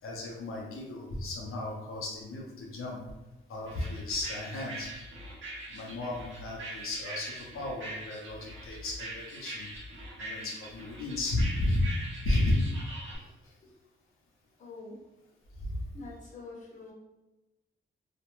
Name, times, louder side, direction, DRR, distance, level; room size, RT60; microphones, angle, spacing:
voice 1, 0.0-3.0 3.5-4.9 5.7-9.7 10.2-11.9 12.2-12.7 13.4-13.5 15.6-15.8, left 1 dB, 85° left, -3 dB, 0.6 m, -33 dB
sound 1, 3.7-13.2, right 1 dB, 65° right, 0.9 m, -43 dB
voice 2, 14.6-15.0 15.9-16.9, left 3 dB, 35° left, -4 dB, 0.7 m, -45 dB
2.4 x 2.1 x 3.0 m, 1.0 s
wide cardioid pair, 155°, 21 cm